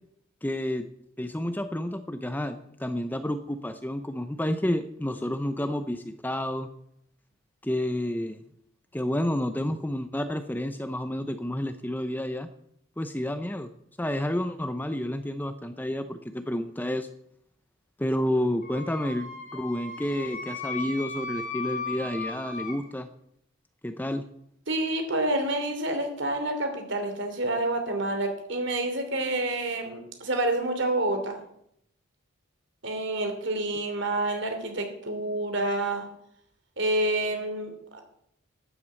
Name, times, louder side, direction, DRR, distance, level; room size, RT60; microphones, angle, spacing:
voice 1, 0.4-0.9 1.2-6.7 7.6-8.4 8.9-12.5 13.0-13.7 14.0-17.1 18.0-23.1 23.8-24.2, left 1 dB, 10° left, 10 dB, 0.6 m, -30 dB
Wind instrument woodwind instrument, 18.6-22.8, left 4 dB, 40° left, 6.6 m, -36 dB
voice 2, 24.7-31.4 32.8-36.1 36.8-38.0, right 2 dB, 55° right, 5 dB, 2.9 m, -28 dB
12.0 x 8.4 x 8.2 m, 0.74 s
head